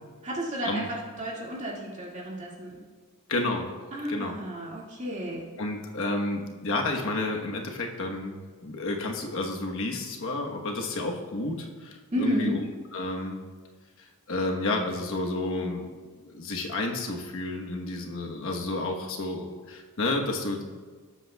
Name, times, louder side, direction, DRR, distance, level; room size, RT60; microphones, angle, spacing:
voice 1, 0.2-2.7 3.9-5.4 12.1-12.6, equal, 35° right, -3 dB, 2.0 m, -31 dB
voice 2, 3.3-3.6 4.1-4.3 5.6-12.6 12.9-13.4 14.0-15.9 16.2-20.6, left 2 dB, 65° left, 1 dB, 1.1 m, -31 dB
18.0 x 8.1 x 2.3 m, 1.5 s
head